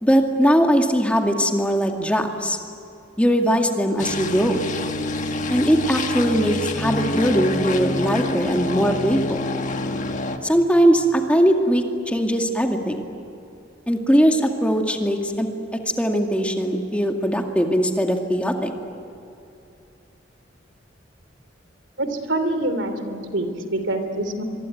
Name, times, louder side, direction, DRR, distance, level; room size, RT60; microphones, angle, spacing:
voice 1, 0.0-2.6 3.2-4.6 5.5-9.5 10.4-13.1 13.9-15.5 16.0-18.7, equal, 5° left, 3 dB, 2.2 m, -20 dB
sound 1, 4.0-10.4, left 2 dB, 40° left, 1.6 m, -27 dB
voice 2, 22.0-24.4, right 1 dB, 75° right, 8 dB, 3.1 m, -25 dB
25.0 x 23.5 x 9.3 m, 2.7 s
head